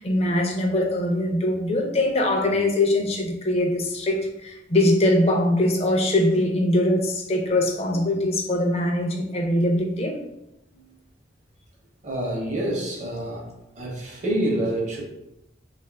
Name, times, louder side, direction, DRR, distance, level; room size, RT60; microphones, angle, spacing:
voice 1, 0.0-10.2, left 1 dB, 35° left, 3 dB, 0.5 m, -22 dB
voice 2, 12.0-13.4 13.8-15.0, right 1 dB, 40° right, -1 dB, 0.7 m, -27 dB
3.4 x 2.4 x 3.3 m, 0.88 s
head